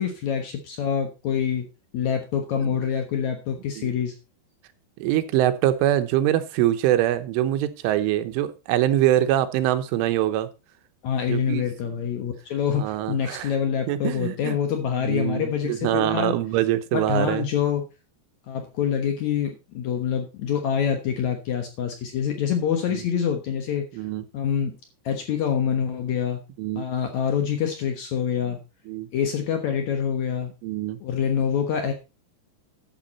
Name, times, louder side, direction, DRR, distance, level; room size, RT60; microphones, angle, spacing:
voice 1, 0.0-1.6 1.9-4.1 11.0-16.4 16.9-17.8 18.5-23.9 24.3-24.7 25.0-26.4 26.8-28.6 29.1-30.5 31.0-31.9, left 8 dB, 90° left, 5 dB, 1.6 m, -26 dB
voice 2, 5.0-10.5 11.3-11.6 12.7-13.5 13.9-14.6 15.0-17.4 22.9-23.0 23.9-24.2 26.6-26.9 28.9-29.1 30.6-31.0, right 13 dB, 90° right, 10 dB, 3.5 m, -24 dB
12.0 x 7.8 x 4.1 m, 0.28 s
omnidirectional pair, 5.4 m